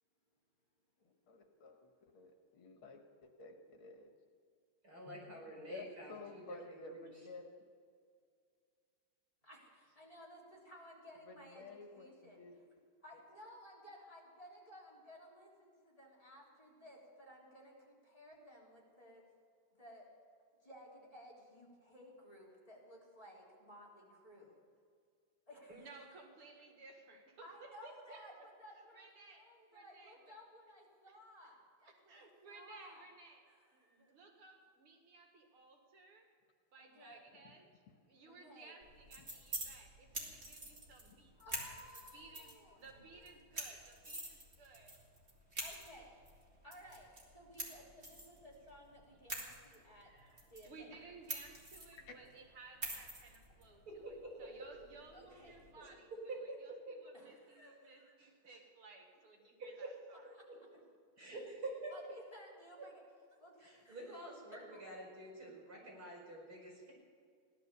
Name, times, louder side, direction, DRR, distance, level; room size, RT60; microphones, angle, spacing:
voice 1, 1.0-4.1 5.1-5.2 5.6-7.4 11.3-12.6 37.3-37.5 39.2-39.3 52.0-52.2, left 3 dB, 75° left, 3 dB, 2.4 m, -53 dB
voice 2, 4.8-6.4 6.7-7.0 53.9-54.5 55.8-56.6 56.9-57.1 58.2-58.6 59.8-59.9 61.2-61.7 63.6-66.9, right 2 dB, 45° right, -3 dB, 5.5 m, -48 dB
voice 3, 9.4-12.5 13.0-19.2 19.8-20.1 20.6-24.6 25.5-25.9 27.4-33.0 33.5-34.1 36.8-37.2 38.3-38.7 41.4-42.8 43.1-43.3 45.6-46.2 46.6-50.1 50.5-50.9 55.1-56.0 57.1-58.2 60.3-60.4 61.9-63.0 63.3-64.3, equal, 15° left, -5 dB, 3.3 m, -57 dB
voice 4, 25.7-28.2 28.9-29.4 29.7-30.3 31.9-33.4 33.7-36.3 36.7-37.7 38.1-41.7 42.1-42.5 42.8-44.9 50.0-60.3, right 3 dB, 80° right, 2 dB, 2.8 m, -58 dB
sound 1, 38.8-55.7, right 1 dB, 30° right, 3.0 m, -49 dB
16.5 x 12.0 x 6.8 m, 2.1 s
omnidirectional pair, 2.3 m